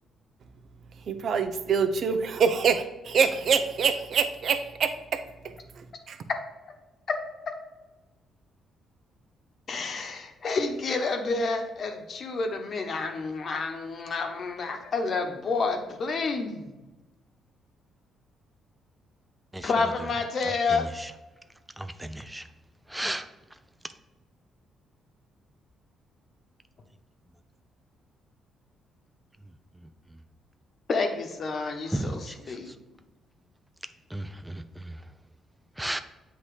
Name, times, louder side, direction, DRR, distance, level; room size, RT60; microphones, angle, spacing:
voice 1, 1.1-5.5 6.1-6.2, right 6 dB, 60° right, 0.6 m, -25 dB
voice 2, 9.7-16.8 19.6-20.9 30.9-32.7, left 4 dB, 50° left, 1.0 m, -29 dB
voice 3, 21.8-22.4 22.9-23.3 31.9-32.1 34.1-34.6 35.8-36.0, right 1 dB, 5° right, 0.4 m, -32 dB
7.9 x 2.8 x 4.9 m
cardioid pair, 90°, 0 cm